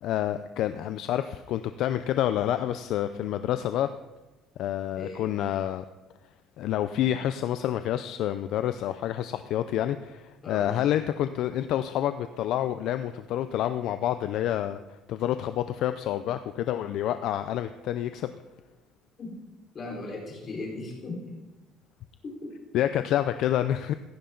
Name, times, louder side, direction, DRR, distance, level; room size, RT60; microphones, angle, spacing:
voice 1, 0.0-3.9 4.6-5.8 6.6-14.8 15.1-18.3 22.7-23.9, left 11 dB, 60° left, 10 dB, 0.5 m, -28 dB
voice 2, 19.7-21.4 22.2-22.5, left 2 dB, 30° left, -3 dB, 4.5 m, -37 dB
16.0 x 14.5 x 3.9 m, 1.1 s
cardioid pair, 160°, 0 cm